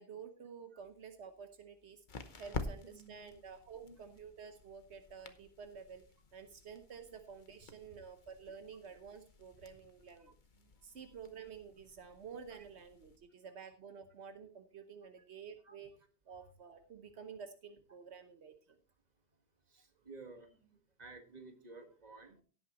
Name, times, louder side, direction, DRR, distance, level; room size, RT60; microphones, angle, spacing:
voice 1, 0.0-2.0 2.4-6.0 6.3-10.3 10.8-15.9 16.3-18.8, right 6 dB, 80° right, 8 dB, 1.3 m, -51 dB
sound 1, 0.8-13.2, left 4 dB, 50° left, 1.1 m, -50 dB
voice 2, 2.5-3.3 3.8-4.0 7.9-8.0 9.5-9.7 10.2-11.0 15.6-15.8 16.3-16.5 19.1-22.4, right 3 dB, 40° right, 5 dB, 1.9 m, -56 dB
16.5 x 8.6 x 3.1 m, 0.38 s
omnidirectional pair, 1.1 m